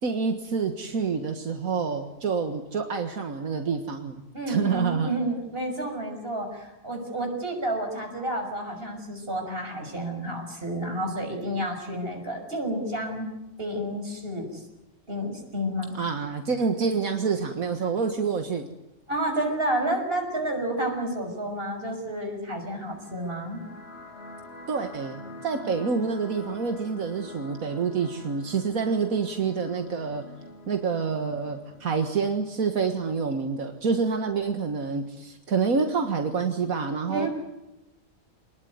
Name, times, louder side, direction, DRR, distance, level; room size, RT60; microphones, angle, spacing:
voice 1, 0.0-4.2 4.5-5.1 15.9-18.7 24.7-30.2 30.7-37.3, right 5 dB, 80° right, 5 dB, 2.0 m, -27 dB
voice 2, 4.3-13.2 13.6-14.6 15.1-16.0 19.1-23.6 37.1-37.3, right 1 dB, 40° right, 3 dB, 6.3 m, -30 dB
sound 1, 22.9-33.9, left 1 dB, 45° left, 5.0 m, -46 dB
26.0 x 20.5 x 9.5 m, 0.93 s
omnidirectional pair, 1.5 m